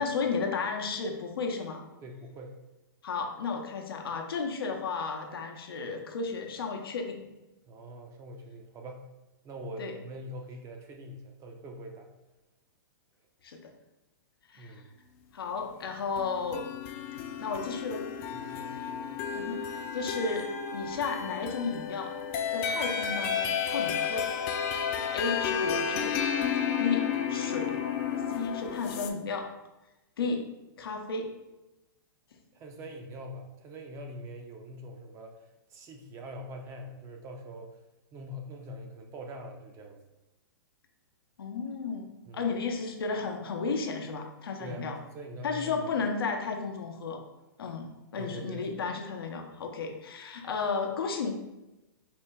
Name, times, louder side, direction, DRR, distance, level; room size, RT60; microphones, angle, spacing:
voice 1, 0.0-1.8 3.0-7.2 9.8-9.9 13.4-13.7 14.5-14.8 15.3-16.6 17.4-18.1 19.3-20.5 20.7-22.1 22.5-24.3 25.1-26.2 26.8-27.9 28.4-29.5 30.2-30.4 30.8-31.3 41.4-45.0 45.4-47.2 47.6-51.3, left 4 dB, 80° left, 3 dB, 0.7 m, -33 dB
voice 2, 2.0-2.6 7.7-9.1 9.4-12.1 14.6-14.9 18.3-19.1 32.5-37.8 38.1-40.0 42.3-42.5 44.6-45.9 48.2-48.7, equal, 25° right, 3 dB, 0.5 m, -43 dB
sound 1, 16.2-29.1, left 7 dB, 35° left, 0.3 m, -32 dB
4.3 x 2.1 x 3.5 m, 1.0 s
hypercardioid pair, 130°, 12 cm